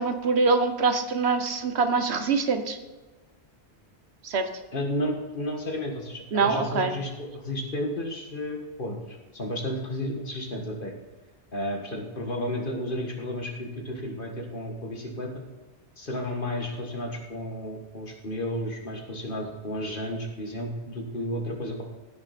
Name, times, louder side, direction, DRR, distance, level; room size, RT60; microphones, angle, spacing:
voice 1, 0.0-2.8 4.2-4.5 6.3-6.9, right 4 dB, 90° right, 8 dB, 1.3 m, -24 dB
voice 2, 4.7-10.9 11.5-15.3 16.0-21.8, left 1 dB, 55° left, 1 dB, 1.9 m, -32 dB
15.5 x 6.5 x 4.3 m, 1.2 s
omnidirectional pair, 1.1 m